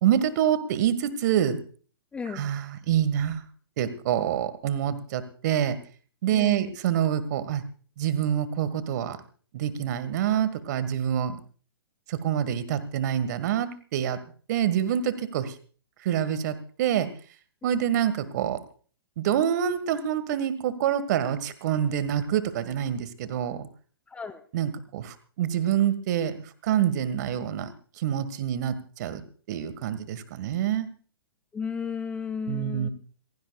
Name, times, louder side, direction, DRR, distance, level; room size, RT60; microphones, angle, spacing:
voice 1, 0.0-1.6 2.3-3.5 3.8-5.8 6.2-7.6 8.0-9.2 9.5-11.4 12.1-14.2 14.5-15.5 16.0-17.1 17.6-18.6 19.2-23.7 24.5-27.7 28.0-29.2 29.5-30.9 32.5-32.9, right 10 dB, 45° right, 13 dB, 1.8 m, -26 dB
voice 2, 2.1-2.5 6.3-6.7 24.1-24.4 31.5-32.9, left 6 dB, 10° left, 10 dB, 0.7 m, -34 dB
27.5 x 16.5 x 2.4 m, 0.41 s
figure-of-eight pair, 125°, 13 cm